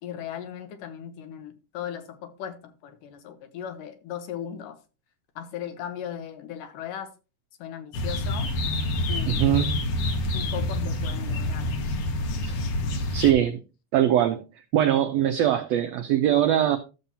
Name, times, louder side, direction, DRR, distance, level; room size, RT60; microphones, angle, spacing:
voice 1, 0.0-4.8 5.4-7.1 7.6-8.5 9.1-9.8 10.3-11.8, left 9 dB, 85° left, 2.7 m, -37 dB
sound 1, 7.9-13.3, left 1 dB, 65° left, 1.7 m, -27 dB
voice 2, 9.3-9.7 12.5-12.6 13.1-13.6 13.9-14.4 14.7-16.8, right 11 dB, 90° right, 1.5 m, -22 dB
13.0 x 6.9 x 2.8 m
omnidirectional pair, 3.7 m